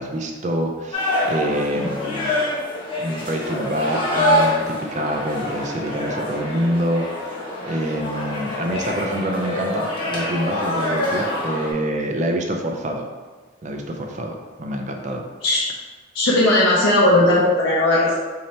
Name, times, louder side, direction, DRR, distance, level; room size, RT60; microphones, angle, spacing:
voice 1, 0.0-2.3 3.0-7.1 7.6-13.1 13.6-15.2, right 1 dB, 35° right, 2 dB, 0.4 m, -26 dB
sound 1, 0.9-11.7, left 1 dB, 25° left, 1.0 m, -25 dB
voice 2, 16.1-18.2, left 1 dB, 90° left, -7 dB, 0.8 m, -17 dB
4.1 x 2.8 x 3.2 m, 1.4 s
head